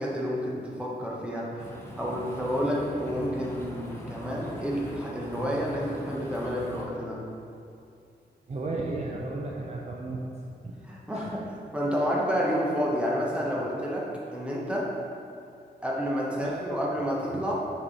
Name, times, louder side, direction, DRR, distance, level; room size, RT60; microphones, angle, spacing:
voice 1, 0.0-1.7 2.0-7.3 10.9-11.5 11.7-14.9 15.8-17.5, equal, 5° right, -4 dB, 1.0 m, -29 dB
sound 1, 1.6-6.8, left 1 dB, 15° left, 0.8 m, -42 dB
voice 2, 8.5-10.8 11.1-11.4 16.4-16.6 17.3-17.4, right 2 dB, 40° right, -2 dB, 0.5 m, -34 dB
6.1 x 4.8 x 4.1 m, 2.5 s
wide cardioid pair, 155°, 18 cm